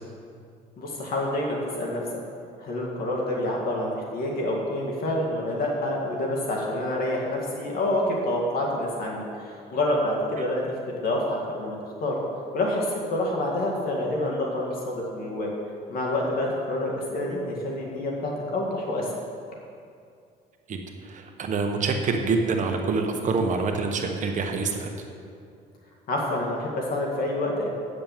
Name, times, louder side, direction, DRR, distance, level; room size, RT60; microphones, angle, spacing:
voice 1, 0.8-2.0 2.6-12.2 12.5-15.5 15.9-19.1 26.1-27.7, left 1 dB, 60° left, -2 dB, 2.0 m, -27 dB
voice 2, 21.0-24.9, right 4 dB, 45° right, 3 dB, 1.2 m, -26 dB
9.2 x 6.8 x 7.4 m, 2.4 s
cardioid pair, 110°, 17 cm